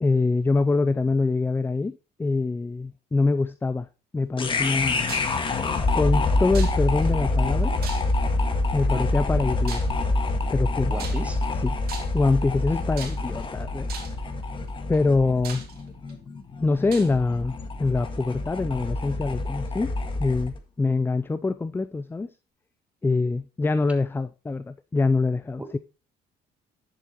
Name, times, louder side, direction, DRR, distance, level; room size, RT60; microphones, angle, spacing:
voice 1, 0.0-3.9 4.1-5.2 5.9-7.7 8.7-10.0 10.5-10.9 11.6-11.8 12.1-13.9 14.9-15.6 16.6-19.9 20.2-22.3 23.0-25.8, left 3 dB, 15° left, 0.4 m, -24 dB
sound 1, 4.4-20.6, left 2 dB, 30° left, 1.7 m, -26 dB
sound 2, 5.1-5.4 6.5-7.1 7.8-8.4 9.7-10.0 11.0-11.5 11.9-12.3 13.0-13.4 13.9-14.2 14.9-15.0 15.4-16.1 16.9-17.1, right 7 dB, 65° right, 2.4 m, -39 dB
voice 2, 10.9-11.4 25.6-25.8, right 1 dB, 10° right, 2.3 m, -36 dB
10.0 x 7.7 x 3.0 m
cardioid pair, 110°, 17 cm